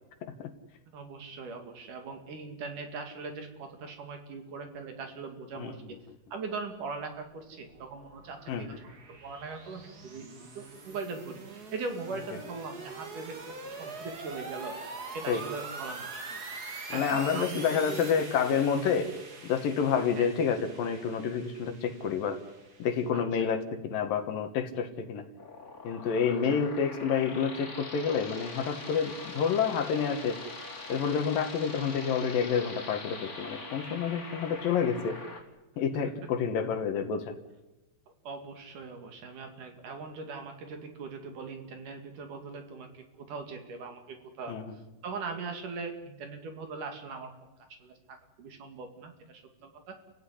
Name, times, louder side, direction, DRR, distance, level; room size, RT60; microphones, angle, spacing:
voice 1, 0.2-0.5 5.6-5.7 8.5-8.7 15.3-15.4 16.9-19.1 19.4-22.4 22.8-25.3 25.8-30.4 30.9-35.2 35.8-37.3 44.5-44.7, left 6 dB, 65° left, 8 dB, 2.9 m, -29 dB
voice 2, 0.9-6.0 6.3-14.8 15.1-16.4 16.9-18.1 20.2-20.3 23.1-23.5 26.5-26.6 36.0-36.1 38.2-47.3 47.8-50.0, right 4 dB, 55° right, 6 dB, 3.4 m, -41 dB
sound 1, 7.3-23.1, right 3 dB, 35° right, 1.8 m, -44 dB
sound 2, 25.4-35.4, left 3 dB, 20° left, 3.0 m, -43 dB
29.5 x 16.0 x 10.0 m, 1.0 s
omnidirectional pair, 4.6 m